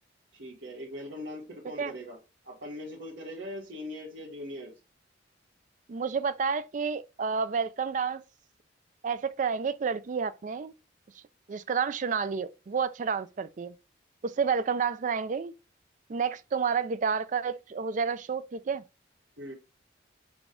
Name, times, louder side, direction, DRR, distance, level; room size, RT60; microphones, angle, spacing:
voice 1, 0.3-2.2 2.4-4.7 19.4-19.5, left 1 dB, 70° right, 1.4 m, -40 dB
voice 2, 5.9-8.2 9.0-10.7 11.5-13.7 14.2-15.5 16.1-18.8, right 6 dB, 40° right, 0.3 m, -30 dB
6.0 x 2.3 x 3.7 m
head